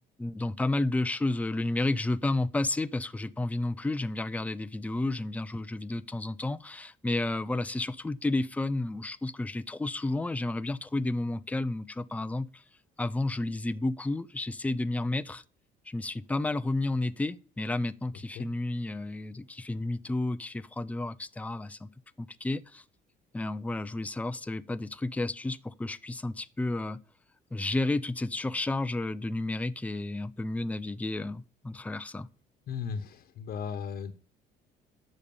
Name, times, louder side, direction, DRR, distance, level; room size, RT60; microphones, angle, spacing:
voice 1, 0.2-12.6 13.0-15.4 15.9-21.9 22.2-22.8 23.3-27.0 27.5-32.3, left 2 dB, 10° left, 0.5 m, -31 dB
voice 2, 32.7-34.1, left 6 dB, 60° left, 1.1 m, -36 dB
10.5 x 6.5 x 7.0 m
cardioid pair, 110°, 17 cm